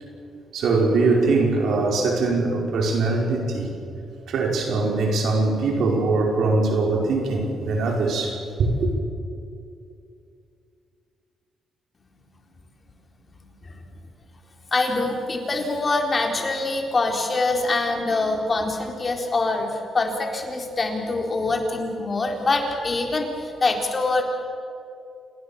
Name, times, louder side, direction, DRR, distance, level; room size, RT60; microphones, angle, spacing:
voice 1, 0.5-3.7 4.3-8.9, right 3 dB, 75° right, 1 dB, 5.1 m, -22 dB
voice 2, 14.7-24.2, left 3 dB, 35° left, 2 dB, 4.0 m, -24 dB
27.5 x 19.5 x 7.2 m, 2.5 s
cardioid pair, 80°, 0 cm